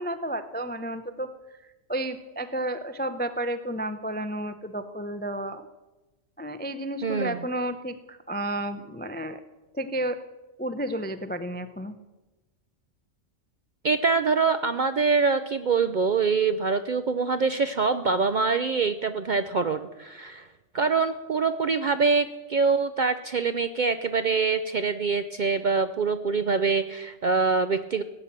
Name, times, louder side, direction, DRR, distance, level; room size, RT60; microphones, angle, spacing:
voice 1, 0.0-5.7 6.4-9.4 9.7-10.2 10.6-11.9, right 1 dB, 15° left, 10 dB, 0.3 m, -32 dB
voice 2, 7.0-7.4 13.8-20.5 20.7-28.0, right 4 dB, 55° right, 10 dB, 0.5 m, -24 dB
16.5 x 8.8 x 7.4 m, 1.1 s
omnidirectional pair, 1.3 m